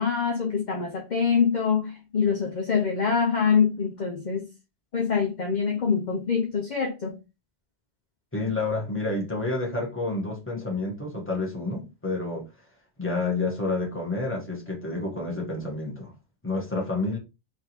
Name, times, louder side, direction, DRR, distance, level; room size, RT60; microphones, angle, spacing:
voice 1, 0.0-4.5 4.9-7.2, left 6 dB, 50° left, 0.7 m, -25 dB
voice 2, 8.3-12.5 13.0-16.1 16.4-17.2, left 2 dB, 10° left, 1.3 m, -29 dB
3.4 x 2.8 x 4.3 m
omnidirectional pair, 1.1 m